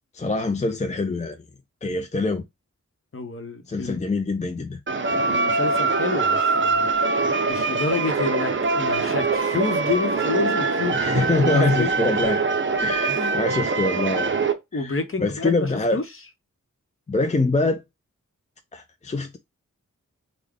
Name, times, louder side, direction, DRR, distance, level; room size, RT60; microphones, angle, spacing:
voice 1, 0.1-1.4 1.8-2.4 3.7-4.8 10.9-12.4 12.8-14.3 14.7-16.0 17.1-17.8 18.7-19.4, left 3 dB, 25° left, 0.4 m, -24 dB
voice 2, 3.1-4.0 5.3-6.9 7.5-11.9 13.1-13.3 14.7-16.0, left 3 dB, 45° left, 0.9 m, -29 dB
sound 1, 4.9-14.5, right 4 dB, 40° right, 0.7 m, -23 dB
3.6 x 2.2 x 3.5 m
wide cardioid pair, 60°, 31 cm